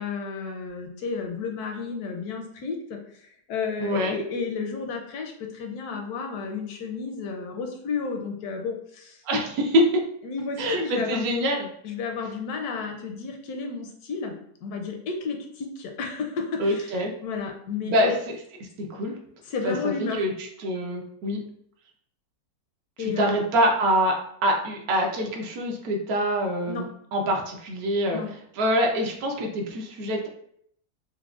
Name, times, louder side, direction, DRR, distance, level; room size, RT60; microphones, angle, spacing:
voice 1, 0.0-9.2 10.2-11.3 11.8-14.4 14.6-18.2 19.4-20.2 23.0-23.4 26.7-26.9 28.1-28.3, left 4 dB, 75° left, 3 dB, 1.1 m, -32 dB
voice 2, 3.8-4.1 9.2-9.9 10.6-11.7 16.6-17.1 17.9-18.1 18.8-19.1 19.6-20.3 20.6-21.4 23.0-24.1 24.4-28.2 28.6-30.3, equal, 70° right, 1 dB, 1.1 m, -25 dB
4.6 x 2.1 x 2.4 m, 0.68 s
omnidirectional pair, 1.7 m